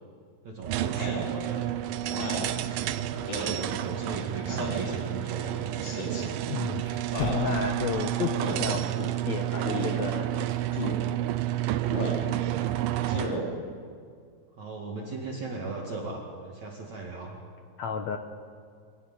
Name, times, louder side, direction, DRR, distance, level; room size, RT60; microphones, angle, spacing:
voice 1, 0.4-1.7 2.1-2.9 3.4-6.7 12.2-12.8 14.6-17.4, right 3 dB, 50° right, -2 dB, 3.1 m, -38 dB
sound 1, 0.6-13.4, right 13 dB, 75° right, 2.3 m, -30 dB
Speech synthesizer, 1.0-1.3 2.1-2.5 3.3-3.6 4.5-4.9 5.8-6.2 7.1-7.4 8.4-8.7 9.6-9.9 10.7-11.0 11.9-12.2 13.0-13.4, left 1 dB, 55° left, 5.7 m, -33 dB
sound 2, 2.9-7.6, left 1 dB, 40° left, 4.8 m, -44 dB
voice 2, 6.5-10.9 17.8-18.2, left 6 dB, 75° left, 6 dB, 1.6 m, -32 dB
25.5 x 16.5 x 9.9 m, 2.2 s
omnidirectional pair, 4.7 m